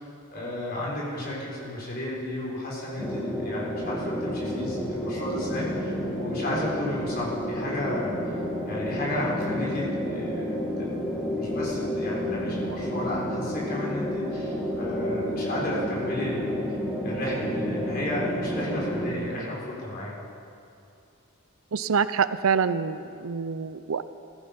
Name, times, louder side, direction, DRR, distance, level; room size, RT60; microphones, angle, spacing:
voice 1, 0.3-8.1 8.6-11.0 11.3-16.5 17.0-20.1, left 1 dB, 45° left, -5 dB, 4.6 m, -33 dB
sound 1, 3.0-19.2, equal, 5° left, 1.5 m, -30 dB
voice 2, 21.7-24.0, right 6 dB, 75° right, 14 dB, 0.5 m, -26 dB
17.5 x 15.0 x 5.3 m, 2.6 s
head